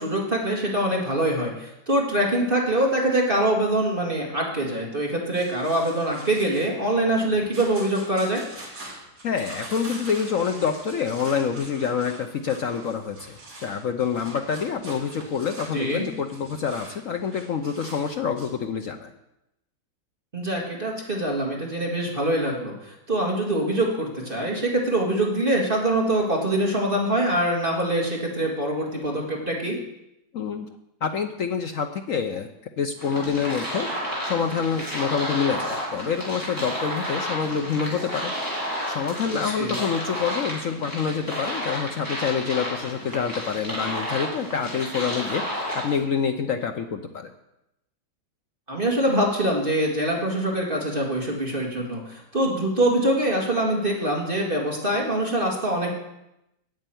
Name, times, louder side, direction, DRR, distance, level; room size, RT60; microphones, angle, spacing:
voice 1, 0.0-8.4 15.7-16.1 20.3-29.8 39.4-39.7 48.7-55.9, right 1 dB, 25° right, -1 dB, 2.2 m, -24 dB
sound 1, 5.3-18.6, right 2 dB, 55° right, 3.3 m, -43 dB
voice 2, 9.2-19.1 30.3-30.7 31.0-32.5 32.8-33.9 34.2-38.3 38.9-47.3, left 6 dB, 65° left, 6 dB, 0.8 m, -27 dB
sound 2, 33.0-46.0, equal, 10° right, 4.5 m, -31 dB
9.0 x 8.0 x 9.1 m, 0.86 s
omnidirectional pair, 2.1 m